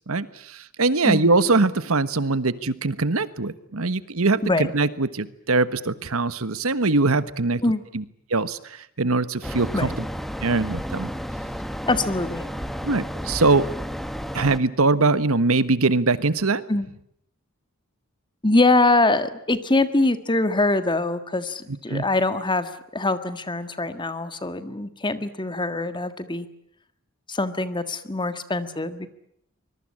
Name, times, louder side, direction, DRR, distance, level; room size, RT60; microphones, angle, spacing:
voice 1, 0.1-7.6 7.9-8.0 8.3-9.9 10.4-11.1 12.8-13.7 14.3-16.6 21.9-22.0, right 3 dB, 80° right, 14 dB, 1.3 m, -22 dB
sound 1, 9.4-14.6, equal, ahead, 1.3 m, -32 dB
voice 2, 11.9-12.4 16.7-16.9 18.4-26.5 27.3-29.1, left 2 dB, 20° left, 11 dB, 1.7 m, -23 dB
25.0 x 22.0 x 8.8 m, 0.73 s
head